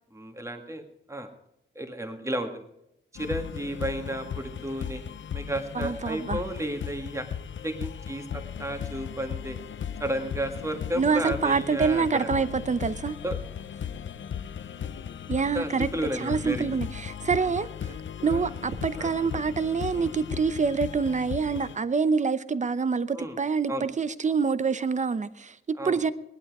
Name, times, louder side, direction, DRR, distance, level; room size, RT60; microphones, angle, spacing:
voice 1, 0.1-0.8 1.1-1.3 1.7-2.7 3.1-5.0 5.3-7.3 7.6-9.6 10.0-12.5 13.2-13.4 15.4-16.6 18.2-18.5 19.0-19.4 19.9-20.1 23.1-23.4 23.7-23.9 25.8-26.0, right 1 dB, 15° right, 5 dB, 1.8 m, -33 dB
sound 1, 3.2-21.8, left 8 dB, 70° left, 0.6 m, -37 dB
voice 2, 5.7-6.4 10.9-13.2 15.3-15.9 16.1-17.7 18.2-26.1, right 5 dB, 35° right, 14 dB, 0.7 m, -26 dB
sound 2, 18.7-19.2 21.2-21.5, right 3 dB, 50° right, 2.4 m, -43 dB
19.0 x 11.5 x 4.8 m, 0.83 s
wide cardioid pair, 175°, 21 cm